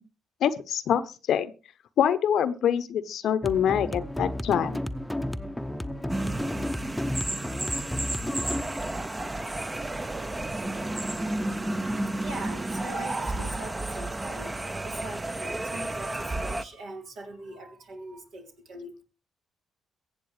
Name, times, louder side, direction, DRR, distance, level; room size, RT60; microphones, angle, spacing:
voice 1, 0.4-1.5 2.0-4.9, left 9 dB, 65° left, 13 dB, 0.8 m, -25 dB
sound 1, 3.4-10.4, left 1 dB, 5° left, 0.9 m, -33 dB
sound 2, 6.1-16.6, right 2 dB, 20° right, 0.9 m, -32 dB
voice 2, 11.9-19.0, right 2 dB, 65° right, 2 dB, 3.5 m, -42 dB
23.0 x 7.8 x 3.2 m, 0.33 s
hypercardioid pair, 45°, 0 cm